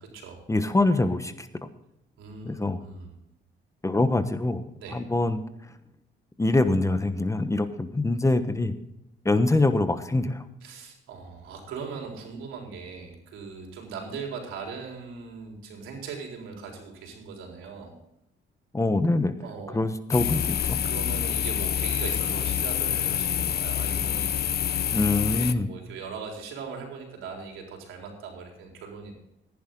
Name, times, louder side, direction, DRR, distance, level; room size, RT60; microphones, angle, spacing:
voice 1, 0.5-1.5 2.4-2.8 3.8-4.6 4.9-5.4 6.4-8.7 9.2-10.4 18.7-19.3 19.7-20.8 24.9-25.7, left 2 dB, 15° left, 10 dB, 1.1 m, -24 dB
voice 2, 2.2-3.1 4.8-5.0 10.6-17.9 19.4-19.8 20.8-24.5 25.3-29.1, right 5 dB, 90° right, 1 dB, 4.1 m, -39 dB
sound 1, 20.1-25.5, left 9 dB, 55° left, 0.7 m, -27 dB
15.0 x 10.5 x 3.9 m, 0.84 s
cardioid pair, 90°, 20 cm